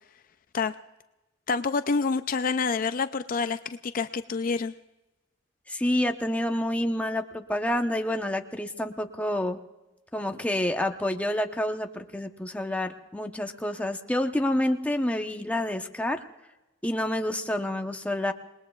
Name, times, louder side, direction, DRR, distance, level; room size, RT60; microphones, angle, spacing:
voice 1, 1.5-4.7, left 4 dB, 45° left, 11 dB, 0.4 m, -27 dB
voice 2, 5.7-9.6 10.1-16.2 16.8-18.3, left 1 dB, 10° left, 4 dB, 0.9 m, -28 dB
28.0 x 20.5 x 2.4 m, 1.0 s
head